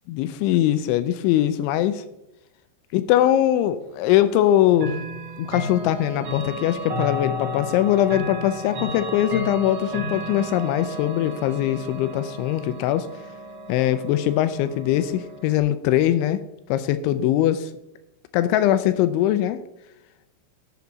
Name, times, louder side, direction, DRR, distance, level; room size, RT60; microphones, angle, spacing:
voice 1, 0.1-2.0 2.9-5.0 5.4-13.1 13.7-16.4 16.7-17.7 18.3-19.6, left 12 dB, 85° left, 12 dB, 2.8 m, -21 dB
Chime / Clock, 4.7-15.6, equal, 75° right, 1.5 m, -33 dB
11.5 x 8.4 x 4.0 m, 0.91 s
omnidirectional pair, 5.5 m